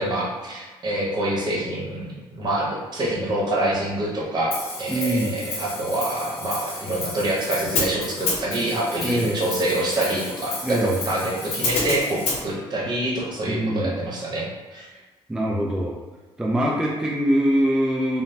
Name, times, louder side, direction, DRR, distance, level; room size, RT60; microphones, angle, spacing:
voice 1, 0.0-14.9, right 1 dB, 45° right, -4 dB, 0.9 m, -26 dB
Hi-hat, 4.5-12.4, left 3 dB, 85° left, 0.7 m, -30 dB
voice 2, 4.9-5.4 9.0-9.4 10.6-11.0 13.5-14.0 15.3-15.9 16.4-18.2, right 1 dB, 5° right, -3 dB, 0.3 m, -23 dB
3.1 x 2.0 x 2.7 m, 1.2 s
cardioid pair, 105°, 10 cm